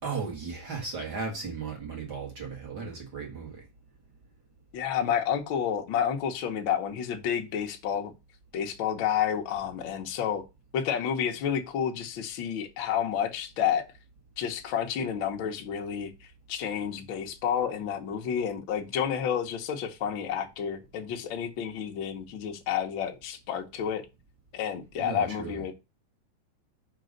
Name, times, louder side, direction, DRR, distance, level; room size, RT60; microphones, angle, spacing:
voice 1, 0.0-3.6 24.9-25.6, right 4 dB, 40° right, 1.7 m, -36 dB
voice 2, 4.7-8.1 8.5-10.4 10.7-13.8 14.4-24.0 24.5-25.7, left 8 dB, 70° left, 1.1 m, -30 dB
5.1 x 5.1 x 6.5 m
omnidirectional pair, 3.6 m